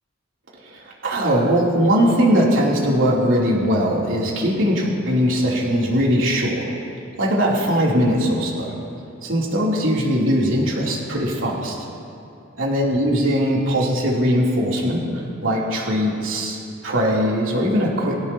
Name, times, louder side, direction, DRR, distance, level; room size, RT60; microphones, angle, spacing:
voice 1, 0.7-6.7 7.2-8.7 9.2-11.8 12.6-15.0 15.4-16.6 16.8-18.2, equal, 75° right, -4 dB, 3.2 m, -20 dB
23.5 x 16.0 x 2.9 m, 2.9 s
head